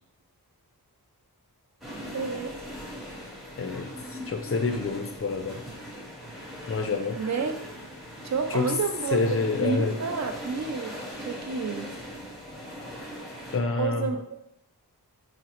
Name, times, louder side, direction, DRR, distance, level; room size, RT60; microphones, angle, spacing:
sound 1, 1.8-13.6, equal, ahead, 0.7 m, -40 dB
voice 1, 2.1-2.5 7.2-7.5 8.2-9.2 9.6-11.0 11.3-11.9 13.8-14.4, right 5 dB, 45° right, 6 dB, 0.4 m, -29 dB
voice 2, 3.6-5.6 6.7-7.2 8.5-8.8 9.1-10.0 13.5-14.1, left 4 dB, 35° left, 5 dB, 0.4 m, -28 dB
3.7 x 2.0 x 2.8 m, 0.79 s
wide cardioid pair, 70°, 39 cm